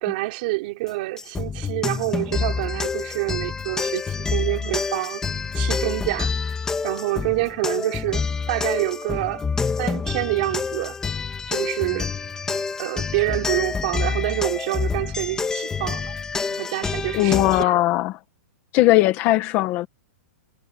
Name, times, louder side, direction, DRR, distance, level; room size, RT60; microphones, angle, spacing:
voice 1, 0.0-5.2 5.5-6.3 6.8-9.5 9.8-11.0 11.5-12.1 12.5-16.1 16.5-17.8, right 21 dB, 35° right, 3.7 m, -27 dB
sound 1, 1.2-17.6, left 5 dB, 5° left, 2.3 m, -27 dB
voice 2, 17.1-18.2 18.7-19.9, left 17 dB, 25° left, 1.7 m, -19 dB
hypercardioid pair, 175°, 8 cm